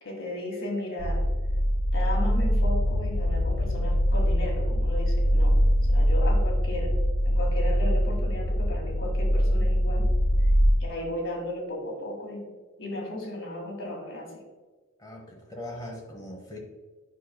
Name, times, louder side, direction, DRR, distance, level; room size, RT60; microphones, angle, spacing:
voice 1, 0.0-1.2 1.9-5.6 5.9-6.9 7.3-10.1 10.8-12.5 12.8-14.3, left 1 dB, 65° left, 0 dB, 1.8 m, -35 dB
sound 1, 1.0-10.7, equal, 90° left, 0.7 m, -23 dB
voice 2, 15.0-16.6, left 1 dB, 15° left, 0 dB, 1.0 m, -40 dB
9.2 x 5.8 x 2.2 m, 1.4 s
head